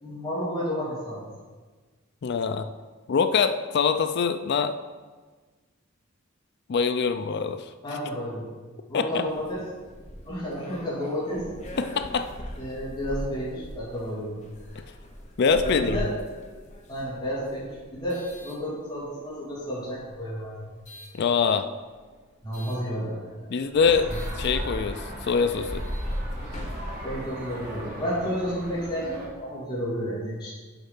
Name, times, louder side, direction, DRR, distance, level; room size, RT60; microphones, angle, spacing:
voice 1, 0.0-1.2 7.8-8.5 8.9-9.6 10.3-11.5 12.6-14.4 15.6-16.1 16.9-20.7 22.4-23.7 24.1-24.2 27.0-30.5, equal, 20° left, -8 dB, 2.4 m, -31 dB
voice 2, 2.2-2.7 3.1-4.7 6.7-7.6 8.9-9.2 11.8-12.3 15.4-16.0 21.1-21.7 23.5-24.1 24.4-25.8, left 5 dB, 55° left, 10 dB, 0.4 m, -24 dB
sound 1, 9.2-19.3 19.9-21.2 22.5-22.8 23.3-23.4 23.7-27.9, equal, 35° left, 1.0 m, -38 dB
sound 2, 23.7-29.3, right 1 dB, 40° right, 1.8 m, -40 dB
7.0 x 5.5 x 5.6 m, 1.4 s
head